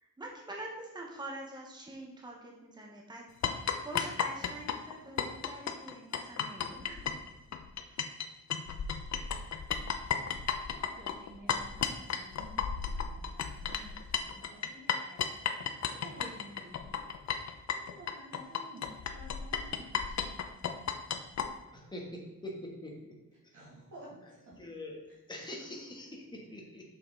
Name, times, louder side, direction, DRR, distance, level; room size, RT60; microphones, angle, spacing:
voice 1, 0.2-7.1, right 1 dB, 15° right, -1 dB, 1.1 m, -45 dB
sound 1, 3.4-8.3 8.5-21.5, left 7 dB, 55° left, 0.6 m, -33 dB
voice 2, 10.6-15.2 15.6-17.1 17.7-20.4 23.5-24.5, right 1 dB, 65° right, -6 dB, 2.4 m, -52 dB
voice 3, 21.7-22.9 24.6-26.8, left 1 dB, 15° left, -1 dB, 1.2 m, -44 dB
6.1 x 5.6 x 3.8 m, 1.1 s
wide cardioid pair, 155°, 33 cm